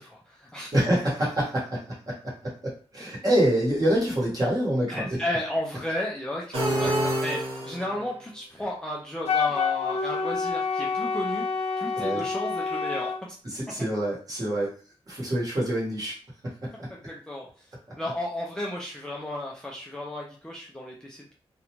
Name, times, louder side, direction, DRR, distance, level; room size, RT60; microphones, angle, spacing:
voice 1, 0.0-0.7 3.0-3.1 4.9-13.1 16.9-17.7 18.0-21.3, left 1 dB, 5° left, -2 dB, 0.4 m, -34 dB
voice 2, 0.7-5.2 6.8-6.9 11.9-12.2 13.4-14.8 15.1-16.1 16.4-16.9, right 1 dB, 35° right, -5 dB, 1.1 m, -26 dB
sound 1, 6.5-8.1, right 1 dB, 55° right, 1.0 m, -27 dB
Wind instrument woodwind instrument, 9.3-13.2, left 5 dB, 75° left, 0.4 m, -28 dB
2.5 x 2.1 x 2.9 m, 0.39 s
wide cardioid pair, 170°, 11 cm